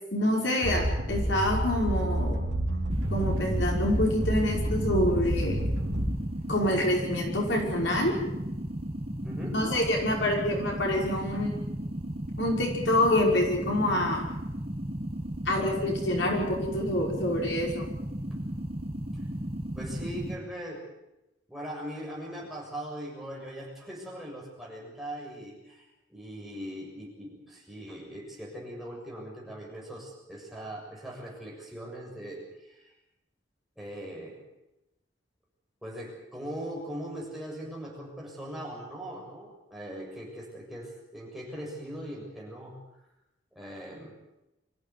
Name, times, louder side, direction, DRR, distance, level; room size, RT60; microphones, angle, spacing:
voice 1, 0.1-2.4 3.1-5.6 6.5-8.1 9.5-11.6 12.4-14.3 15.5-17.9, left 1 dB, 70° left, 0 dB, 5.8 m, -27 dB
sound 1, 0.6-6.4, right 1 dB, 70° right, 2.9 m, -29 dB
sound 2, 2.9-20.4, right 1 dB, 30° right, 1.9 m, -35 dB
voice 2, 9.2-9.6 18.3-18.4 19.1-19.2 19.7-20.8 21.5-32.9 33.8-34.4 35.8-42.8 43.5-44.1, equal, ahead, -3 dB, 7.1 m, -40 dB
25.0 x 15.0 x 9.6 m, 0.93 s
head